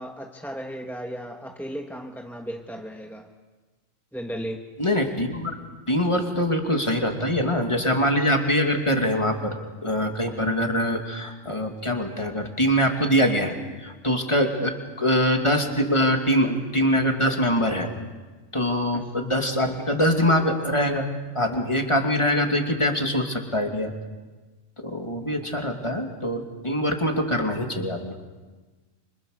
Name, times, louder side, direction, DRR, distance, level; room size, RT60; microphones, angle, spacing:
voice 1, 0.0-3.3 4.1-4.6 18.9-19.1, equal, ahead, 2 dB, 1.4 m, -35 dB
voice 2, 4.8-5.5 5.9-17.9 18.5-21.1 21.3-23.9 24.8-28.2, equal, 20° left, 3 dB, 2.5 m, -23 dB
30.0 x 25.0 x 6.6 m, 1.3 s
omnidirectional pair, 1.4 m